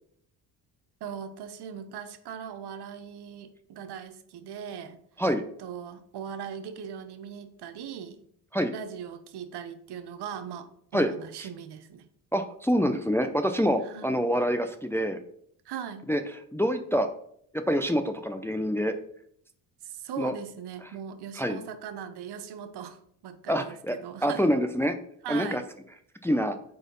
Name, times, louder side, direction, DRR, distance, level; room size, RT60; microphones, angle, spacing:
voice 1, 1.0-5.0 5.6-8.2 8.7-12.1 13.8-14.1 15.6-16.1 19.8-23.7 24.0-24.5 25.2-25.7, right 8 dB, 65° right, 9 dB, 0.8 m, -39 dB
voice 2, 12.3-15.2 16.1-17.1 17.5-18.9 20.2-20.3 21.4-21.6 23.5-23.9 24.2-25.0 25.3-25.6 26.2-26.6, equal, 5° left, 7 dB, 0.4 m, -26 dB
4.5 x 4.3 x 5.2 m, 0.66 s
supercardioid pair, 75°, 42 cm